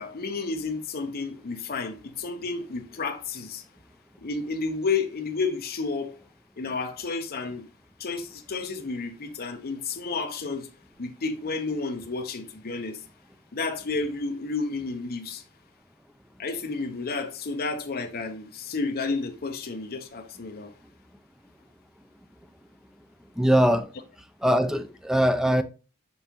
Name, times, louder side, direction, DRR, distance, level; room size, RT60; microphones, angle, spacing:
voice 1, 0.0-3.6 4.2-6.1 6.6-7.7 8.0-10.7 11.0-13.0 13.5-15.4 16.4-20.7, left 4 dB, 45° left, 0.7 m, -31 dB
voice 2, 23.4-23.9 24.4-25.6, equal, ahead, 0.4 m, -21 dB
6.1 x 5.4 x 2.9 m
head